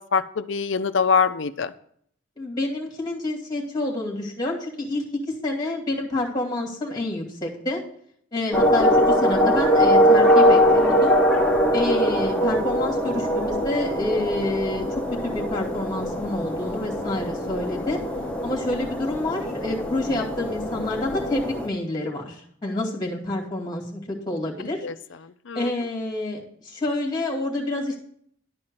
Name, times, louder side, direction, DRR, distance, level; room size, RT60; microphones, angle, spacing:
voice 1, 0.0-1.7 24.8-24.9 25.5-25.7, left 5 dB, 65° left, 12 dB, 0.5 m, -23 dB
voice 2, 2.4-7.8 8.3-11.2 11.7-14.9 15.2-18.0 18.4-24.9 25.5-28.0, left 2 dB, 20° left, -1 dB, 2.4 m, -28 dB
sound 1, 8.5-21.7, equal, 5° left, 1.3 m, -21 dB
11.5 x 4.4 x 7.8 m, 0.65 s
head